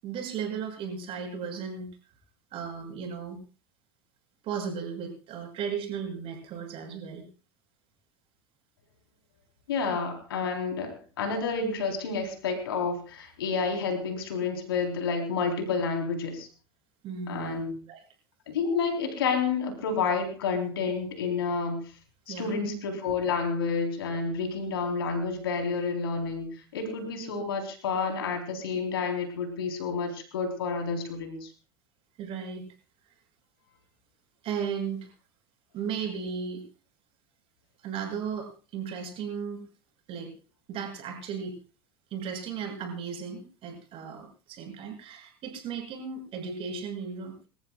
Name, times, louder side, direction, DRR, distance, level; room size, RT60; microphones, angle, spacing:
voice 1, 0.0-1.9 2.5-3.4 4.4-7.2 17.0-17.6 17.9-18.0 22.3-22.6 32.2-32.6 34.4-35.1 35.7-36.6 37.8-39.7 40.1-40.3 40.7-41.6 42.1-47.5, right 6 dB, 50° right, 2 dB, 7.2 m, -35 dB
voice 2, 9.7-16.5 17.3-17.8 18.5-21.8 22.3-31.5, left 5 dB, 80° left, 3 dB, 4.1 m, -30 dB
27.0 x 14.5 x 2.4 m, 0.36 s
hypercardioid pair, 85°, 12 cm